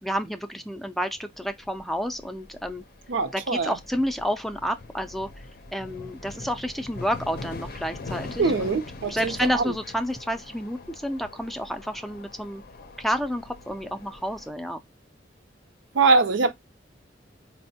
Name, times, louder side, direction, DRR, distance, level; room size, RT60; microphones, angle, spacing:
voice 1, 0.0-2.8 3.3-5.3 5.7-8.8 9.1-12.6 13.0-14.8, equal, ahead, 0.3 m, -30 dB
sound 1, 1.3-14.5, left 3 dB, 55° left, 0.5 m, -42 dB
voice 2, 3.1-3.7 8.4-9.6 15.9-16.5, right 4 dB, 90° right, 0.5 m, -23 dB
4.3 x 2.1 x 2.7 m
head